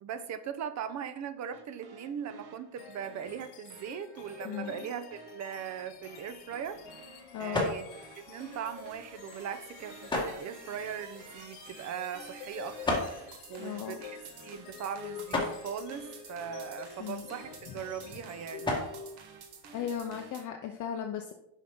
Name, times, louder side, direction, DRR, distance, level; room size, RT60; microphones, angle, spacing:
voice 1, 0.0-6.8 7.4-7.9 8.2-18.7, right 8 dB, 35° right, 12 dB, 0.5 m, -40 dB
sound 1, 1.5-20.4, right 5 dB, 50° right, 1.1 m, -52 dB
sound 2, 2.8-19.4, left 8 dB, 85° left, 1.0 m, -48 dB
sound 3, 5.9-20.3, left 2 dB, 10° left, 1.4 m, -39 dB
voice 2, 7.3-7.7 13.6-14.0 17.0-17.3 17.7-17.8 19.7-21.3, left 8 dB, 40° left, 5 dB, 0.5 m, -36 dB
6.6 x 5.5 x 3.5 m, 0.82 s
cardioid pair, 135°, 49 cm